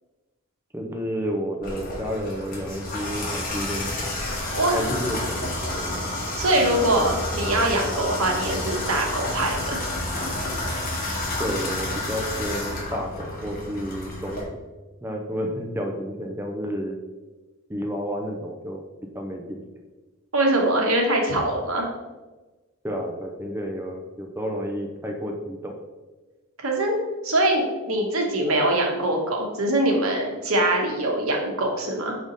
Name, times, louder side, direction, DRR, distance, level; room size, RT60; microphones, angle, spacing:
voice 1, 0.7-4.1 4.7-5.5 5.8-5.9 11.4-14.4 15.0-17.0 17.7-18.8 19.1-19.6 22.8-25.7, equal, 10° right, 1 dB, 0.5 m, -31 dB
Water tap faucet / Bathtub (filling or washing), 1.6-14.4, left 1 dB, 40° left, 1.5 m, -30 dB
voice 2, 4.5-4.8 6.4-9.8 20.3-21.9 26.6-27.0 27.2-32.1, right 1 dB, 70° right, 0 dB, 1.3 m, -23 dB
5.2 x 4.9 x 4.0 m, 1.2 s
head